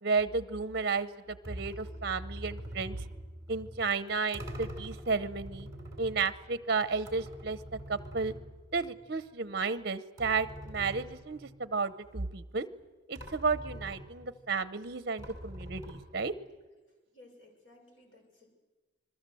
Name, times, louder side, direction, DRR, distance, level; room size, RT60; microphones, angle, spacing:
voice 1, 0.0-3.0 3.5-5.7 6.0-8.3 8.7-12.7 13.1-16.3, right 4 dB, 55° right, 14 dB, 0.8 m, -32 dB
sound 1, 1.4-9.3 9.6-9.7 10.2-11.8 12.8-12.9 13.2-14.5 15.2-16.5, equal, 15° right, 3.2 m, -45 dB
voice 2, 17.1-18.6, left 2 dB, 80° left, 2 dB, 6.9 m, -58 dB
27.0 x 21.5 x 7.8 m, 1.2 s
head